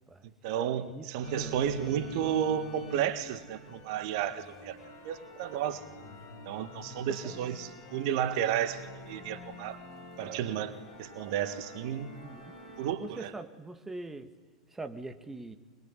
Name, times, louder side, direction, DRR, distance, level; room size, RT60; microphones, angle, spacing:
voice 1, 0.4-4.8 5.0-5.8 6.5-9.8 10.2-12.1 12.8-13.3, right 10 dB, 55° right, 12 dB, 1.8 m, -32 dB
sound 1, 1.2-12.9, right 1 dB, 55° left, 6.6 m, -46 dB
voice 2, 1.4-1.9 7.0-7.3 12.2-12.6 13.0-14.3 14.7-15.5, right 2 dB, 10° right, 8 dB, 2.0 m, -43 dB
26.0 x 22.0 x 9.9 m, 1.2 s
figure-of-eight pair, 90°, 3 cm